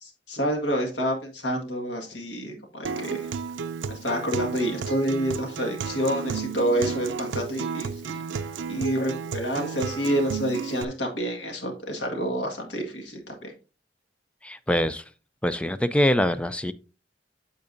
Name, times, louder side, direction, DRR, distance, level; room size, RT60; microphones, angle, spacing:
voice 1, 0.0-3.3 3.9-8.2 8.7-13.5, equal, 75° left, 1.8 m, -28 dB
Acoustic guitar, 2.8-10.8, right 5 dB, 90° right, 0.5 m, -33 dB
voice 2, 14.4-15.0 15.4-16.7, left 1 dB, 5° left, 0.4 m, -24 dB
8.6 x 6.9 x 2.6 m
head